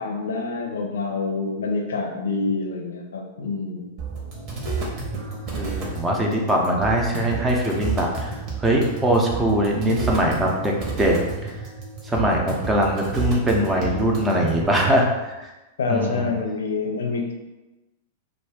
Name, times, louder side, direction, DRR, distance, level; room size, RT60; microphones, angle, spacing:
voice 1, 0.0-3.9 13.7-14.1 15.8-17.3, left 4 dB, 80° left, 2 dB, 0.5 m, -27 dB
sound 1, 4.0-14.6, right 4 dB, 45° right, 1.0 m, -31 dB
voice 2, 5.5-11.5 12.0-15.5 15.9-16.3, right 1 dB, 15° right, -1 dB, 0.6 m, -22 dB
2.4 x 2.2 x 3.4 m, 1.1 s
hypercardioid pair, 105°, 0 cm